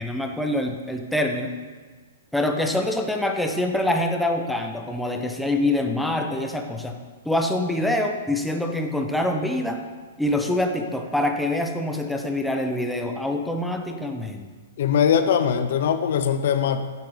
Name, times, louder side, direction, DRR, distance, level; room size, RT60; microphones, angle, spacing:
voice 1, 0.0-1.5 2.3-7.0 7.2-9.8 10.2-14.5, left 1 dB, ahead, 3 dB, 0.9 m, -25 dB
voice 2, 14.8-16.9, left 8 dB, 65° left, 10 dB, 0.7 m, -21 dB
9.5 x 7.6 x 5.1 m, 1.5 s
hypercardioid pair, 130°, 0 cm